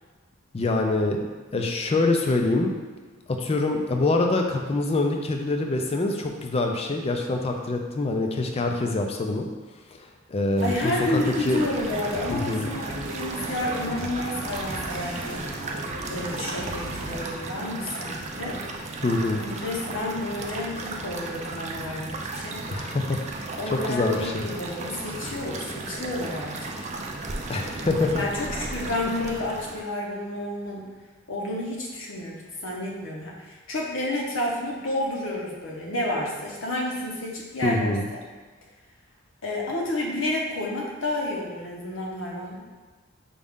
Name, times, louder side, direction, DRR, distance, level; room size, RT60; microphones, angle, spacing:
voice 1, 0.5-1.3 1.5-2.7 3.3-9.5 10.3-11.6 12.3-12.7 19.0-19.4 22.7-24.4 27.5-28.2 37.6-38.0, left 2 dB, 30° left, 3 dB, 0.4 m, -25 dB
voice 2, 10.6-15.4 16.1-18.6 19.4-22.6 23.6-26.8 27.7-30.9 31.3-38.2 39.4-42.6, left 1 dB, 70° left, -2 dB, 0.9 m, -30 dB
sound 1, 10.6-29.8, right 3 dB, 35° right, 0.4 m, -35 dB
sound 2, 11.9-17.2, right 1 dB, 80° right, 0.7 m, -37 dB
5.2 x 2.4 x 3.6 m, 1.4 s
head